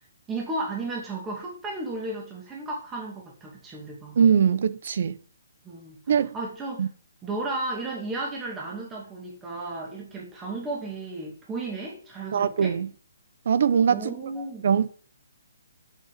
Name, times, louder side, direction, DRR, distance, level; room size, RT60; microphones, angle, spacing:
voice 1, 0.3-4.2 5.6-6.0 6.3-6.9 7.2-12.8 13.9-14.7, right 2 dB, 10° right, 2.2 m, -34 dB
voice 2, 4.2-5.2 6.1-6.3 6.8-6.9 12.3-12.9 13.5-14.1 14.6-14.9, right 7 dB, 50° right, 0.9 m, -21 dB
7.9 x 7.6 x 7.5 m
hypercardioid pair, 170°, 0 cm